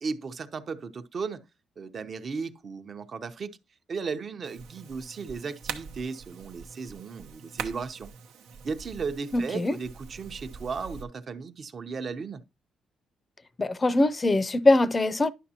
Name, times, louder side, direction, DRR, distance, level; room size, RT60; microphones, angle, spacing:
voice 1, 0.0-1.4 1.8-3.6 3.9-8.1 8.6-12.4, right 5 dB, 45° right, 0.8 m, -35 dB
sound 1, 4.4-11.0, right 6 dB, 90° right, 0.9 m, -43 dB
voice 2, 9.3-9.8 13.6-15.3, left 2 dB, 25° left, 0.6 m, -22 dB
11.0 x 6.0 x 2.9 m
cardioid pair, 90°, 0 cm